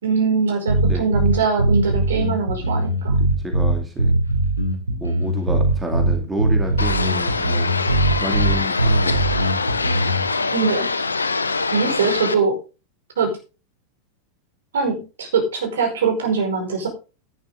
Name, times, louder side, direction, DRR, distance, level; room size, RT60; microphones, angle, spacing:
voice 1, 0.0-3.2 10.5-10.9 11.7-12.6 13.2-13.3 14.7-16.9, right 5 dB, 65° right, 2 dB, 5.0 m, -22 dB
sound 1, 0.7-10.3, right 2 dB, 85° right, 2.6 m, -20 dB
voice 2, 3.2-4.1 5.0-7.7 8.2-9.5, right 1 dB, 10° right, 3 dB, 2.4 m, -30 dB
sound 2, 6.8-12.3, left 4 dB, 80° left, 0.9 m, -24 dB
11.5 x 10.0 x 3.8 m, 0.32 s
figure-of-eight pair, 90°, 0 cm